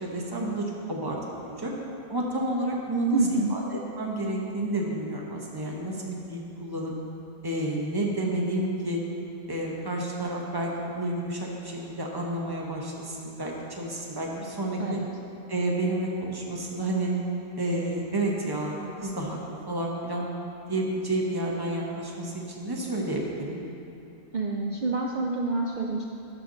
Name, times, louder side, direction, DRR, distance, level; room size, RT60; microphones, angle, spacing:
voice 1, 0.0-1.7 2.1-3.6 4.0-6.9 7.4-9.0 9.5-15.0 15.5-17.1 17.6-19.4 19.7-20.2 20.7-23.6, right 1 dB, 20° right, -2 dB, 0.8 m, -30 dB
voice 2, 3.1-3.6 14.8-15.1 24.3-26.1, right 3 dB, 80° right, -1 dB, 0.4 m, -27 dB
11.0 x 5.7 x 3.8 m, 2.9 s
omnidirectional pair, 1.4 m